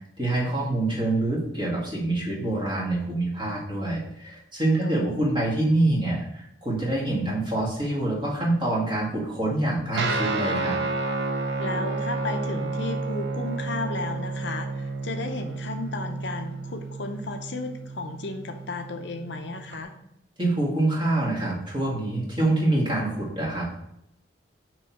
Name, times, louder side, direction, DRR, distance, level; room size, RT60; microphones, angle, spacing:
voice 1, 0.2-10.8 20.4-23.7, right 2 dB, 25° right, -4 dB, 1.7 m, -26 dB
voice 2, 4.8-5.3 11.6-19.9, left 3 dB, 65° left, 6 dB, 0.6 m, -34 dB
Guitar, 9.9-19.8, right 3 dB, 60° right, 0.7 m, -31 dB
6.2 x 3.1 x 5.7 m, 0.77 s
head